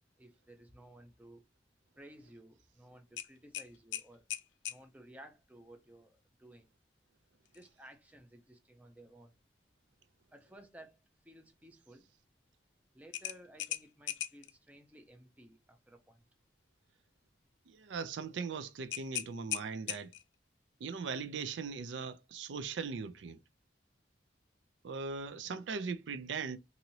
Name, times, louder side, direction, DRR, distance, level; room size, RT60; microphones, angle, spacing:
voice 1, 0.2-1.4 2.0-4.2 4.7-6.7 7.5-9.4 10.3-12.1 12.9-16.3, right 1 dB, 10° right, 0.5 m, -56 dB
sound 1, 3.2-4.8 7.4-7.7 8.1-8.2 13.1-14.5 18.9-20.3, left 12 dB, 85° left, 0.4 m, -39 dB
voice 2, 17.7-20.1 20.8-23.4 24.8-26.6, right 5 dB, 85° right, 0.4 m, -39 dB
2.9 x 2.6 x 2.7 m
head